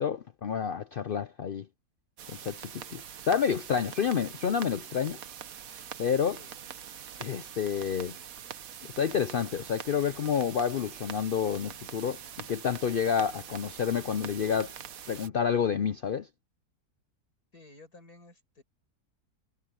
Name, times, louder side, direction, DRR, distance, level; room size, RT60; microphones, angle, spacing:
voice 1, 0.0-1.7 2.3-5.2 6.0-6.4 7.2-8.2 9.0-14.7 15.1-16.3, left 7 dB, 85° left, 0.4 m, -29 dB
sound 1, 2.2-15.3, right 8 dB, 60° right, 1.4 m, -44 dB
voice 2, 6.3-6.9 9.2-9.5 17.5-18.6, left 2 dB, 65° left, 7.3 m, -54 dB
omnidirectional pair, 1.7 m